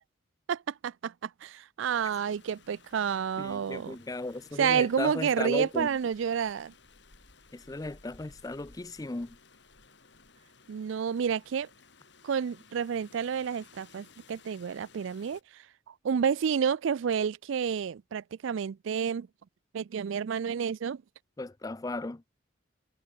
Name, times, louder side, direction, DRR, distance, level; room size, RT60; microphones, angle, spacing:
voice 1, 0.5-4.0 4.6-6.7 10.7-11.7 12.2-19.3 19.7-21.0, right 7 dB, 70° right, 0.4 m, -30 dB
Rain, 1.9-15.4, left 4 dB, 60° left, 3.2 m, -58 dB
voice 2, 3.4-5.9 7.5-9.4 21.4-22.2, left 2 dB, 15° left, 0.4 m, -36 dB
head